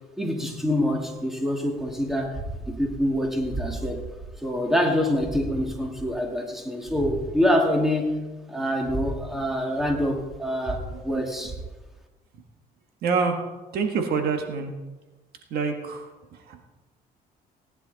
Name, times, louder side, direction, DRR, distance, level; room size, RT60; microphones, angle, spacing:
voice 1, 0.2-4.0 4.4-8.2 8.5-11.6, equal, ahead, 1 dB, 2.2 m, -25 dB
voice 2, 13.0-13.3 13.7-14.7 15.5-16.1 16.5-16.6, right 5 dB, 65° right, 5 dB, 1.7 m, -25 dB
18.0 x 10.5 x 4.1 m, 1.2 s
cardioid pair, 110°, 17 cm